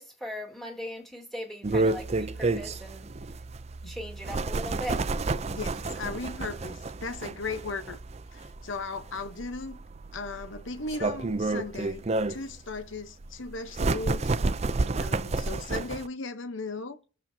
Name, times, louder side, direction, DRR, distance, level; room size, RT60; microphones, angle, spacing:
voice 1, 0.0-3.1 3.8-5.0, left 1 dB, ahead, 2.0 m, -39 dB
sound 1, 1.6-16.1, right 3 dB, 35° right, 0.5 m, -30 dB
voice 2, 5.5-8.0 8.3-9.8 10.1-14.3 15.0-17.0, left 3 dB, 75° left, 1.0 m, -37 dB
20.5 x 7.2 x 2.8 m
head